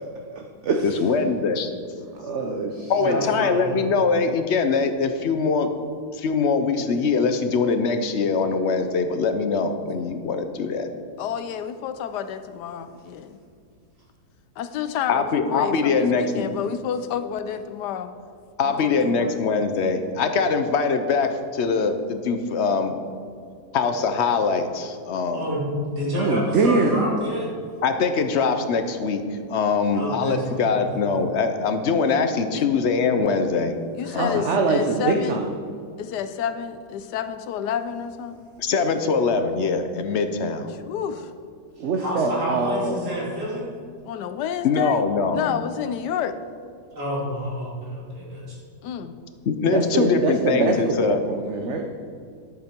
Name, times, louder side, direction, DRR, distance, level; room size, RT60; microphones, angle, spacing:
voice 1, 0.3-1.0 2.1-3.3 26.1-27.1 34.0-35.6 41.8-43.0 49.7-51.8, right 3 dB, 55° right, 3 dB, 0.9 m, -24 dB
voice 2, 0.8-1.7 2.9-5.7 6.1-10.9 15.1-16.5 18.6-23.0 23.7-25.5 27.8-33.8 34.1-34.5 38.6-40.7 44.6-45.6 49.5-51.2, left 4 dB, 55° left, 8 dB, 0.8 m, -23 dB
voice 3, 2.9-3.8 25.3-27.5 29.9-30.9 34.8-34.9 41.8-43.7 46.9-48.6, equal, 80° right, -5 dB, 3.4 m, -29 dB
voice 4, 11.2-13.4 14.6-18.1 18.6-19.4 32.5-32.7 34.0-35.4 36.0-38.5 40.9-41.3 44.1-45.0 45.3-46.4 48.8-49.2, left 8 dB, 90° left, 11 dB, 1.2 m, -29 dB
11.0 x 8.5 x 4.5 m, 2.3 s
omnidirectional pair, 1.7 m